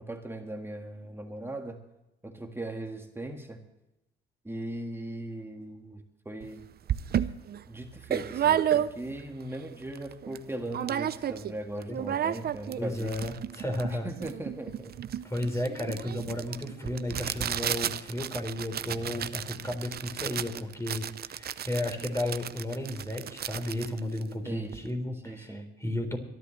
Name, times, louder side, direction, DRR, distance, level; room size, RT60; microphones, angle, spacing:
voice 1, 0.0-1.8 2.2-3.6 4.5-6.6 7.7-13.2 13.9-14.9 24.5-24.8 25.2-25.7, right 1 dB, 10° right, 4 dB, 1.7 m, -38 dB
sound 1, 6.4-6.5 6.9-9.3 9.7-9.8 9.9-10.4 10.7-11.5 11.8-24.9, right 10 dB, 50° right, 0.6 m, -32 dB
voice 2, 12.8-14.1 15.2-26.2, left 1 dB, 15° left, 4 dB, 3.9 m, -33 dB
25.5 x 11.5 x 3.2 m, 0.91 s
cardioid pair, 90°, 20 cm